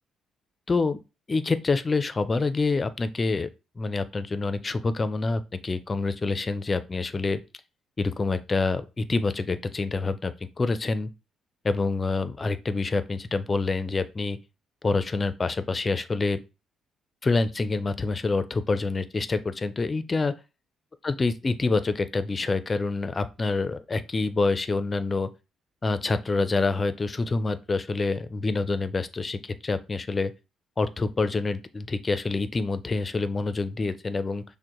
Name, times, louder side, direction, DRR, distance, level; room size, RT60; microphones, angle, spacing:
voice 1, 0.7-1.0 1.3-3.5 3.8-7.4 8.0-11.1 11.6-14.4 14.8-16.4 17.2-20.3 21.0-25.3 25.8-30.3 30.8-34.4, left 3 dB, 25° left, 0.4 m, -27 dB
6.0 x 2.1 x 3.0 m
cardioid pair, 100°, 0 cm